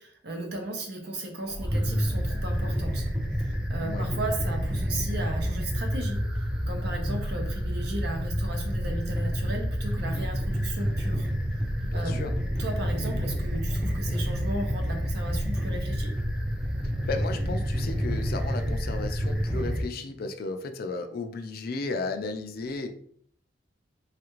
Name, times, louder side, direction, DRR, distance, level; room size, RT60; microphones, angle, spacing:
voice 1, 0.0-3.1 3.4-11.3 11.9-12.3 12.6-16.1, right 2 dB, 60° right, 3 dB, 0.7 m, -36 dB
sound 1, 1.5-19.8, equal, 5° right, 0.5 m, -29 dB
voice 2, 11.8-12.3 17.1-22.9, left 3 dB, 55° left, 6 dB, 0.4 m, -34 dB
3.2 x 2.4 x 3.0 m, 0.62 s
head